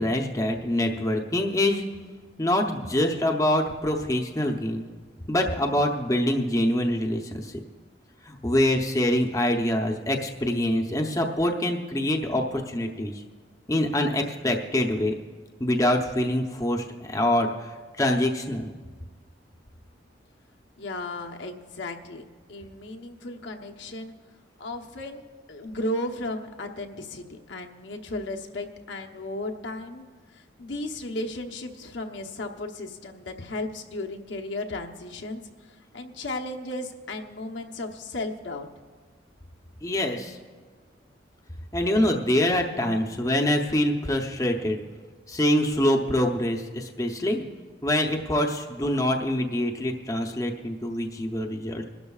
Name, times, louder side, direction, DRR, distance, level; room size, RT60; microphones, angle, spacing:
voice 1, 0.0-1.8 2.4-4.8 5.3-7.5 8.3-13.2 13.7-15.1 15.6-17.7 18.0-18.7 39.8-40.4 41.7-44.8 45.3-47.4 47.8-51.9, left 1 dB, 20° left, 2 dB, 0.7 m, -25 dB
voice 2, 20.8-22.2 22.5-24.1 24.6-25.2 25.5-30.1 30.3-38.7, left 2 dB, 75° left, 2 dB, 1.0 m, -35 dB
22.5 x 12.5 x 2.4 m, 1.5 s
head